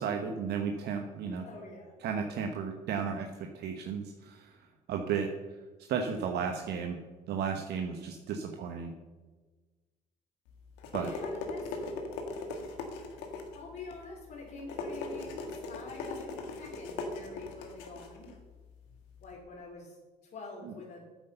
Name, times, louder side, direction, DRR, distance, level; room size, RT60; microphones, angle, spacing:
voice 1, 0.0-1.4 2.0-4.5 4.9-5.3 5.9-7.0 7.3-8.9 10.9-11.1, right 6 dB, 70° right, 4 dB, 1.1 m, -34 dB
voice 2, 1.4-2.0 10.9-12.0 13.5-18.3 19.2-20.0 20.2-21.0, left 3 dB, 60° left, -3 dB, 3.1 m, -46 dB
sound 1, 10.5-19.3, left 3 dB, 85° left, 1.8 m, -40 dB
9.7 x 8.2 x 6.7 m, 1.3 s
supercardioid pair, 65°, 17 cm